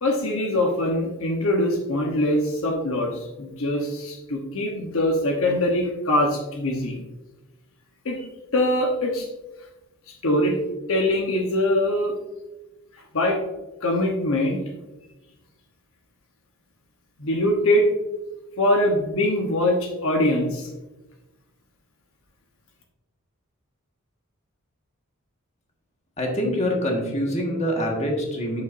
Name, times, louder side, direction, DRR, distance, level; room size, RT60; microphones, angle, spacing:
voice 1, 0.0-7.0 8.0-8.3 8.5-9.3 10.2-10.6 10.9-12.1 12.9-13.4 13.8-14.6 17.2-17.9 18.6-20.7, left 1 dB, 65° left, 1 dB, 1.0 m, -23 dB
voice 2, 26.2-28.6, equal, 30° left, 0 dB, 1.6 m, -25 dB
8.5 x 6.8 x 2.6 m, 1.1 s
head